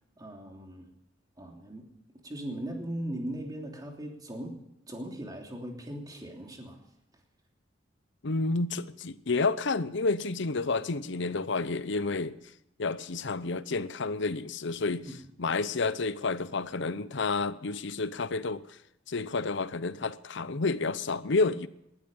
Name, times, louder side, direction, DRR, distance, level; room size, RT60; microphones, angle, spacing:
voice 1, 0.2-0.9 1.4-1.9 2.2-4.6 4.9-6.8 15.0-15.1, right 1 dB, 20° right, 3.0 m, -39 dB
voice 2, 8.2-12.4 12.8-15.1 15.4-18.6 19.1-21.7, left 3 dB, 65° left, 0.8 m, -30 dB
19.0 x 12.5 x 5.5 m
head